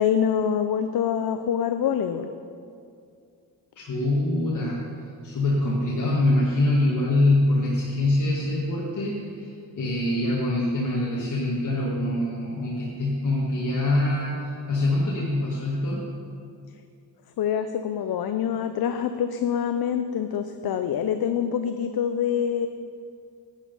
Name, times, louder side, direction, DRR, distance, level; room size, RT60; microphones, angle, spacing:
voice 1, 0.0-2.3 17.4-22.7, left 8 dB, 65° left, 8 dB, 0.6 m, -25 dB
voice 2, 3.8-4.8 5.2-16.1, left 2 dB, 45° left, -5 dB, 1.9 m, -24 dB
11.0 x 9.3 x 5.5 m, 2.3 s
cardioid pair, 90°, 40 cm